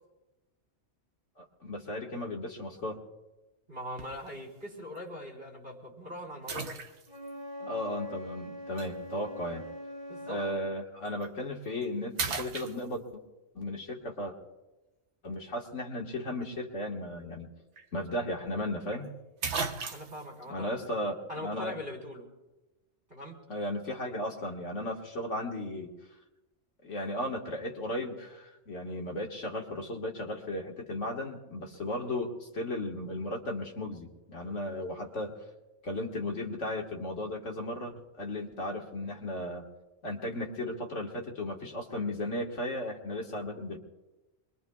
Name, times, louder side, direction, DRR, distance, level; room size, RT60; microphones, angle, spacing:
voice 1, 1.4-3.0 7.6-9.6 10.3-13.0 13.5-14.3 15.2-17.5 17.9-19.1 20.5-21.7 23.5-25.9 26.8-35.3 35.8-39.6 40.0-43.8, left 1 dB, 90° left, 0 dB, 2.1 m, -35 dB
voice 2, 3.7-6.8 10.1-10.4 19.9-20.8 21.3-22.3 23.1-23.4, left 1 dB, 45° right, -1 dB, 3.9 m, -41 dB
sound 1, 4.0-4.3 5.0-5.1 6.5-7.3 8.8-8.9 11.1-11.2 11.7-11.9 12.2-13.3 17.4-17.5 17.8-17.9 18.9-19.0 19.4-20.3, right 5 dB, 70° right, 1.2 m, -35 dB
Wind instrument woodwind instrument, 7.1-10.6, left 1 dB, 70° left, 7.2 m, -42 dB
26.0 x 22.0 x 2.3 m, 1.1 s
omnidirectional pair, 1.2 m